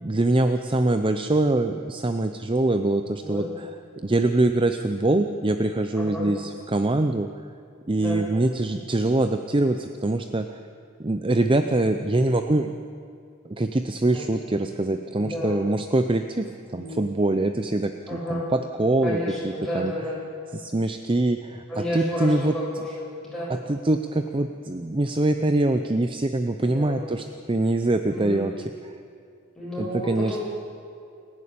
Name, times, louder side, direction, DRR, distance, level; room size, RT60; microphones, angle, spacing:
voice 1, 0.0-3.5 4.0-7.3 7.9-10.6 11.0-12.8 13.4-19.2 19.4-19.9 20.5-21.6 21.9-22.5 23.5-28.5 28.8-29.0 29.8-30.4, right 2 dB, 25° right, 8 dB, 0.6 m, -24 dB
voice 2, 6.0-6.3 8.0-8.2 14.0-14.3 15.1-15.6 16.7-17.0 18.1-18.5 19.0-20.2 21.7-23.5 26.6-27.0 28.1-28.4 29.6-30.4, left 1 dB, ahead, -6 dB, 7.5 m, -31 dB
29.0 x 11.0 x 8.7 m, 2.4 s
head